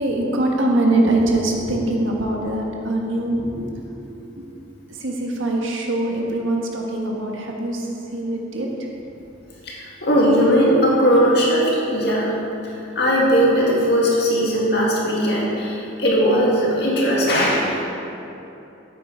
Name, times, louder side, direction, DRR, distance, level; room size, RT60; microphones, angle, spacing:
voice 1, 0.0-3.7 4.4-4.5 5.0-7.9 8.1-8.7, right 1 dB, 80° right, 0 dB, 1.4 m, -22 dB
voice 2, 10.0-12.3 13.0-17.8, equal, 55° left, -4 dB, 2.1 m, -18 dB
8.9 x 8.5 x 5.1 m, 2.9 s
head